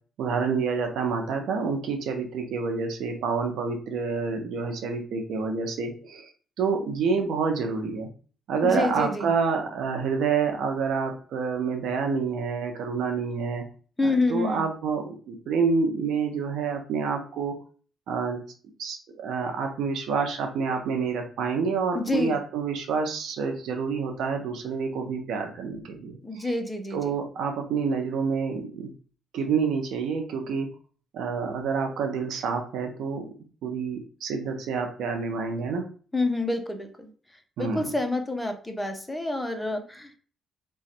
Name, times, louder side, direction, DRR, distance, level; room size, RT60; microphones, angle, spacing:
voice 1, 0.2-6.3 6.6-8.1 8.5-13.6 14.0-17.6 18.1-18.4 18.8-26.5 26.9-28.9 29.3-30.7 31.1-33.3 33.6-35.8 37.6-37.9, right 5 dB, 80° right, 4 dB, 0.8 m, -28 dB
voice 2, 8.6-9.3 14.0-14.7 21.9-22.4 26.2-27.1 36.1-37.1 37.6-40.2, left 2 dB, 10° left, 5 dB, 0.7 m, -28 dB
3.1 x 2.3 x 4.2 m, 0.40 s
cardioid pair, 90°, 0 cm